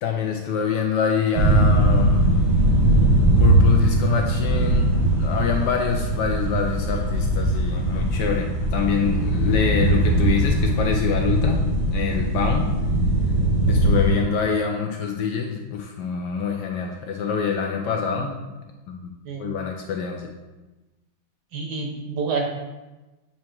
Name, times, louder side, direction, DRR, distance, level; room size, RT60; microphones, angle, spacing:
voice 1, 0.0-2.3 3.4-12.7 13.6-18.3 18.9-19.1 19.4-20.3, left 6 dB, 75° left, 2 dB, 1.1 m, -26 dB
sound 1, 1.3-14.1, right 1 dB, 85° right, 2.4 m, -20 dB
voice 2, 21.5-22.5, right 4 dB, 65° right, 2 dB, 1.3 m, -28 dB
7.5 x 2.9 x 4.4 m, 1.1 s
omnidirectional pair, 2.2 m